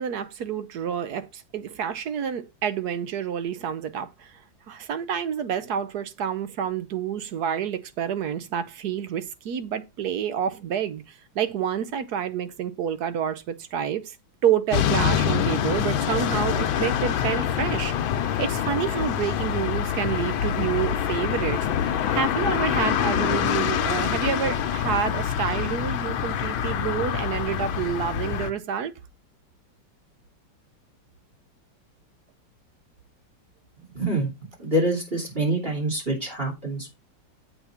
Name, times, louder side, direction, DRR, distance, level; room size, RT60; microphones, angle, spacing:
voice 1, 0.0-4.4 4.7-14.2 14.4-17.9 18.4-28.9, right 8 dB, 65° right, 1.2 m, -28 dB
sound 1, 14.7-28.5, left 9 dB, 90° left, 1.6 m, -25 dB
voice 2, 33.8-34.3 34.6-36.9, right 1 dB, 30° right, 3.1 m, -26 dB
7.9 x 4.1 x 5.7 m
omnidirectional pair, 2.1 m